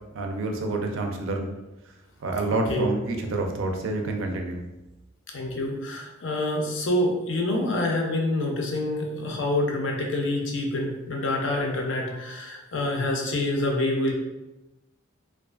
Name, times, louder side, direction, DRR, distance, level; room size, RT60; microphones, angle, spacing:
voice 1, 0.1-1.5 2.2-4.6, right 2 dB, 70° right, 3 dB, 0.4 m, -28 dB
voice 2, 5.3-14.1, left 1 dB, 65° left, 1 dB, 0.5 m, -27 dB
2.4 x 2.3 x 2.3 m, 1.0 s
head